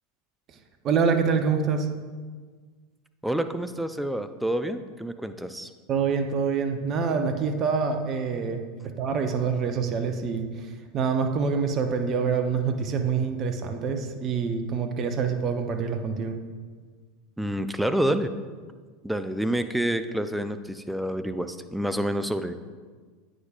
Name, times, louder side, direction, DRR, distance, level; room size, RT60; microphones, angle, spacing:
voice 1, 0.8-1.9 5.9-16.4, right 5 dB, 40° right, 6 dB, 0.7 m, -26 dB
voice 2, 3.2-5.7 17.4-18.3 19.0-22.5, right 1 dB, 5° right, 9 dB, 0.4 m, -28 dB
9.5 x 5.0 x 2.4 m, 1.5 s
hypercardioid pair, 85°, 0 cm